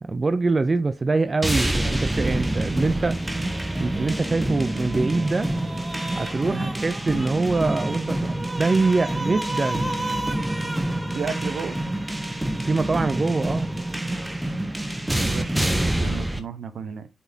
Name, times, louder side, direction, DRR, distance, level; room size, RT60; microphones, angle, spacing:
voice 1, 0.0-3.2 3.8-5.5 6.2-10.1 12.6-13.7, right 3 dB, 35° right, 0.5 m, -24 dB
sound 1, 1.4-16.4, right 1 dB, 10° right, 1.2 m, -26 dB
voice 2, 11.1-11.8 15.1-17.1, right 6 dB, 70° right, 0.9 m, -33 dB
7.8 x 4.3 x 2.8 m
cardioid pair, 60°, 0 cm